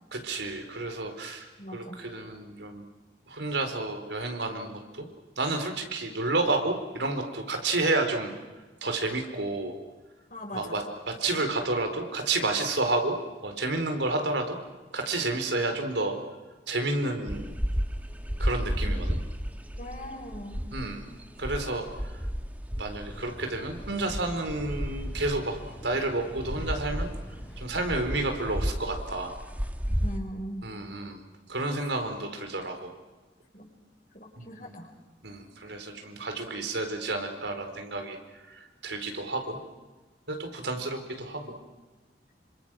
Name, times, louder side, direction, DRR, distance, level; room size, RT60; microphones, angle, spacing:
voice 1, 0.1-2.9 3.3-5.1 5.4-8.3 8.8-9.7 10.5-13.2 13.4-14.6 14.9-16.2 16.7-17.5 18.4-19.2 20.7-21.0 21.4-21.9 22.8-25.6 25.8-27.1 27.6-29.4 30.6-31.2 31.5-32.9 34.4-34.7 35.2-39.6 40.3-41.6, right 2 dB, 85° right, 5 dB, 4.4 m, -30 dB
voice 2, 1.6-2.0 10.3-10.8 19.8-20.6 29.9-30.7 33.5-33.7 34.2-34.9 41.4-41.5, equal, 45° left, 1 dB, 6.5 m, -40 dB
sound 1, 17.3-30.2, equal, 10° right, 1.7 m, -33 dB
sound 2, 23.1-28.7, equal, 10° left, 4.6 m, -46 dB
28.5 x 26.0 x 6.3 m, 1.2 s
head